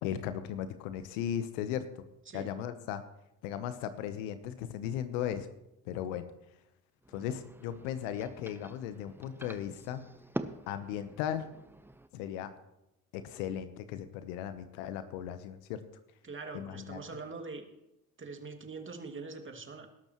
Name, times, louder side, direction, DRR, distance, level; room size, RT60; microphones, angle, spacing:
voice 1, 0.0-1.9 2.3-3.0 3.4-5.5 5.8-6.2 7.1-10.0 10.7-11.5 12.1-12.5 13.1-15.8 16.5-17.0, left 10 dB, 75° left, 11 dB, 1.2 m, -36 dB
sound 1, 7.0-12.1, right 1 dB, 5° right, 0.9 m, -45 dB
voice 2, 16.2-17.6 18.2-19.9, right 4 dB, 25° right, 4 dB, 2.4 m, -43 dB
19.5 x 12.0 x 3.1 m, 0.89 s
hypercardioid pair, 65°, 43 cm